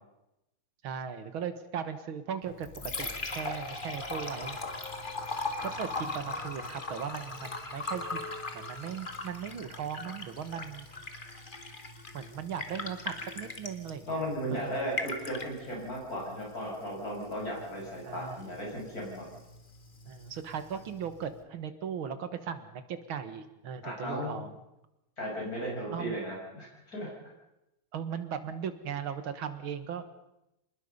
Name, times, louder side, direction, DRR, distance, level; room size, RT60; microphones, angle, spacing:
voice 1, 0.8-4.6 5.6-8.2 8.5-10.9 12.1-15.0 18.0-18.5 20.1-24.5 25.9-26.2 27.9-30.0, right 7 dB, 90° right, 10 dB, 2.3 m, -38 dB
Liquid, 2.4-21.4, left 3 dB, 25° left, 1.8 m, -40 dB
voice 2, 14.1-19.3 23.8-24.4 25.2-27.1, equal, 45° left, -2 dB, 6.9 m, -36 dB
26.0 x 20.0 x 5.5 m, 0.90 s
omnidirectional pair, 2.2 m